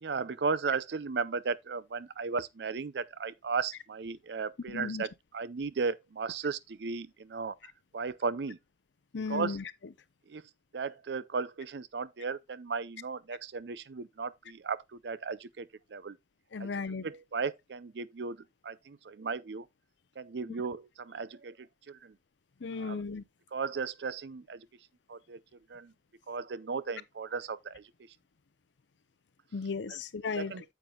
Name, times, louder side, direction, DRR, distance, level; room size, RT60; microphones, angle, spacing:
voice 1, 0.0-7.5 7.9-8.6 9.3-9.6 10.3-10.4 10.7-16.2 16.6-16.7 17.0-18.4 18.6-19.7 20.2-22.1 22.7-23.0 23.5-24.7 25.1-25.4 25.7-25.9 26.3-27.8 29.9-30.0 30.4-30.6, right 5 dB, 65° right, 0.5 m, -35 dB
voice 2, 4.7-5.0 9.1-9.6 16.5-17.1 22.6-23.2 29.5-30.5, left 4 dB, 85° left, 0.6 m, -35 dB
9.1 x 7.4 x 2.3 m
head